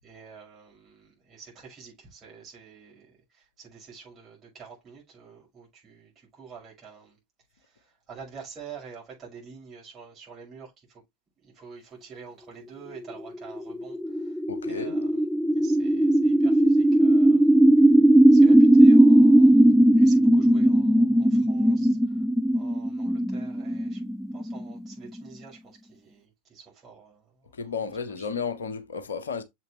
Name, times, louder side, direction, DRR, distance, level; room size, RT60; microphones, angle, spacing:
voice 1, 0.0-7.2 7.5-11.0 11.4-15.3 15.5-17.6 18.3-22.2 22.5-24.0 24.3-28.3, right 6 dB, 25° right, 5.7 m, -48 dB
sound 1, 13.1-25.2, right 1 dB, ahead, 0.3 m, -18 dB
voice 2, 14.5-15.0 27.6-29.4, left 5 dB, 70° left, 1.0 m, -33 dB
7.1 x 5.7 x 3.1 m
figure-of-eight pair, 90°, 0 cm